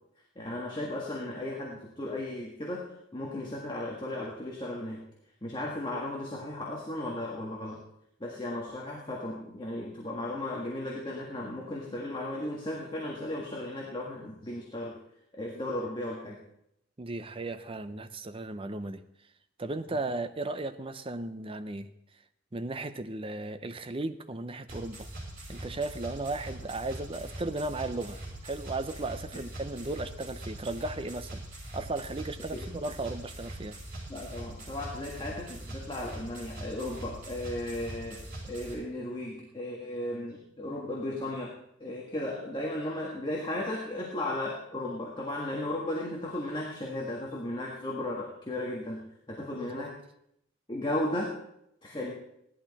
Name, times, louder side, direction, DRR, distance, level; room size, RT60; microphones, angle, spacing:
voice 1, 0.4-5.0 5.4-7.8 8.2-15.0 15.3-16.4 32.5-32.6 34.1-50.0 50.7-51.4 51.8-52.1, left 1 dB, 25° left, 1.7 m, -35 dB
voice 2, 17.0-19.0 19.6-21.9 22.5-25.1 25.5-31.4 31.7-33.8 49.5-49.8, right 2 dB, 25° right, 0.6 m, -35 dB
sound 1, 24.7-38.7, right 1 dB, 45° right, 6.0 m, -42 dB
16.5 x 11.5 x 4.1 m
head